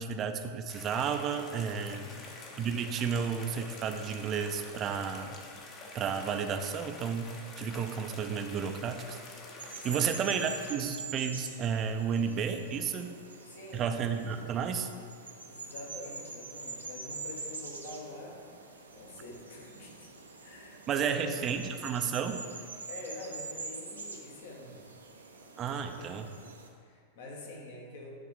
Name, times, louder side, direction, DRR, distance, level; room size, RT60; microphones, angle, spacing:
voice 1, 0.0-2.0 2.6-5.4 5.9-9.2 9.8-13.2 13.7-14.9 20.9-22.4 25.6-26.3, right 6 dB, 30° right, 7 dB, 0.5 m, -32 dB
sound 1, 0.7-10.7, left 2 dB, 35° left, 1.0 m, -47 dB
voice 2, 1.9-2.3 9.8-10.5 13.4-13.9 15.2-18.4 18.9-20.1 20.4-21.4 22.9-24.8 26.0-26.2 26.8-28.1, left 2 dB, 55° left, 0 dB, 1.3 m, -46 dB
sound 2, 9.6-26.7, right 4 dB, 75° right, 0.7 m, -45 dB
9.7 x 3.5 x 5.0 m, 2.2 s
figure-of-eight pair, 90°, 0 cm